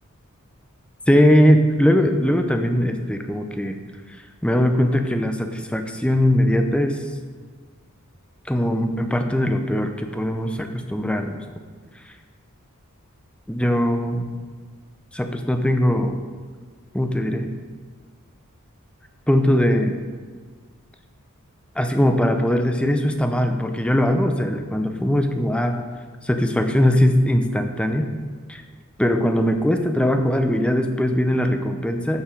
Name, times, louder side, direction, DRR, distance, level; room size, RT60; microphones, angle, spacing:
voice 1, 1.1-3.8 4.4-7.0 8.5-11.4 13.5-14.3 15.1-16.2 16.9-17.5 19.3-20.0 21.8-25.8 26.2-28.1 28.5-28.6 29.0-32.2, equal, 5° left, 6 dB, 0.6 m, -20 dB
13.0 x 4.7 x 5.1 m, 1.5 s
head